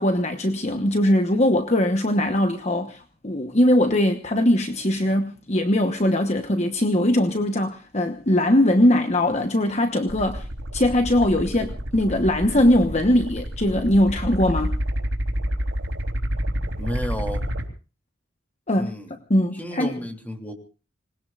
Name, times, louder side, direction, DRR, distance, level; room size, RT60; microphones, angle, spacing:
voice 1, 0.0-10.5 10.7-14.7 18.7-18.9 19.3-19.9, left 1 dB, 35° left, 1.1 m, -21 dB
sound 1, 10.1-17.7, equal, 85° right, 3.8 m, -29 dB
voice 2, 16.8-17.4 18.7-19.2 19.5-20.5, equal, 10° left, 3.1 m, -32 dB
26.5 x 20.5 x 2.5 m
head